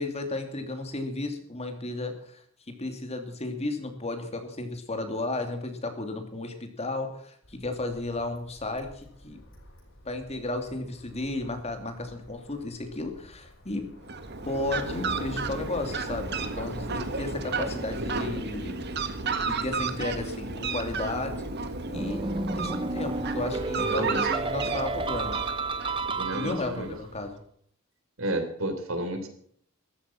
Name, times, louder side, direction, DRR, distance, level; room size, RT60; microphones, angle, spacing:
voice 1, 0.0-9.4 10.0-13.8 14.4-18.7 19.4-21.4 21.9-22.2 22.5-25.4 26.3-27.4, left 2 dB, 30° left, 6 dB, 2.7 m, -33 dB
sound 1, 7.4-27.3, left 1 dB, 70° left, 7.6 m, -54 dB
Fowl, 14.0-27.0, right 4 dB, 55° right, 1.6 m, -33 dB
sound 2, 21.9-26.9, right 3 dB, 25° right, 0.8 m, -31 dB
voice 2, 23.8-24.3 26.2-26.9 28.2-29.3, right 1 dB, 80° right, 6 dB, 3.5 m, -31 dB
14.0 x 13.0 x 6.1 m, 0.62 s
head